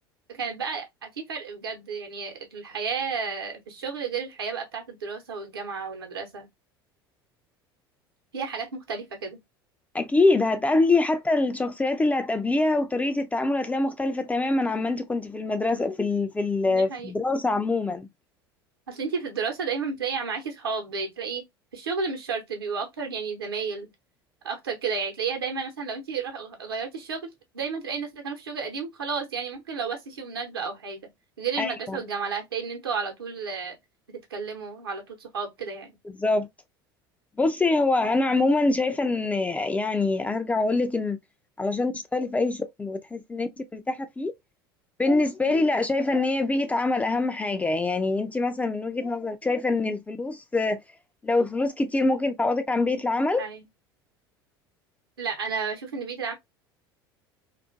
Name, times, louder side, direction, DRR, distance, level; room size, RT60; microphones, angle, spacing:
voice 1, 0.3-6.5 8.3-9.4 16.6-17.1 18.9-21.4 21.7-23.9 24.4-27.2 27.5-31.0 31.4-33.8 34.1-36.0 45.4-45.7 53.4-53.6 55.2-56.3, right 5 dB, 75° right, 0.8 m, -32 dB
voice 2, 9.9-18.1 31.6-32.0 36.2-36.5 37.4-41.2 41.6-44.3 45.0-50.8 51.2-53.5, left 2 dB, 10° left, 0.3 m, -24 dB
2.4 x 2.4 x 2.5 m
figure-of-eight pair, 70°, 12 cm